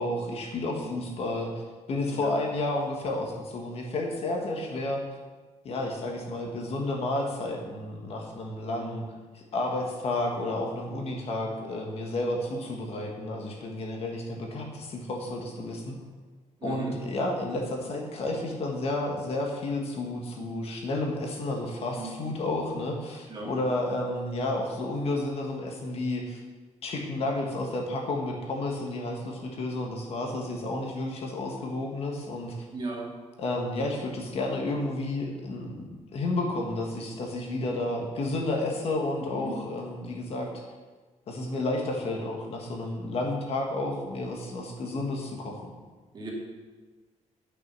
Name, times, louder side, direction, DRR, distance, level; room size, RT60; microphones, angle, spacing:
voice 1, 0.0-1.5 1.9-5.0 5.6-9.1 9.3-16.0 16.6-26.4 26.8-32.7 33.4-40.5 41.3-45.7, left 2 dB, 50° left, 0 dB, 1.5 m, -31 dB
voice 2, 16.6-16.9 22.0-22.1 23.3-23.5 32.7-33.1 39.3-39.5 46.1-46.3, right 3 dB, 35° right, -4 dB, 2.5 m, -36 dB
9.5 x 6.0 x 6.0 m, 1.3 s
cardioid pair, 165°, 13 cm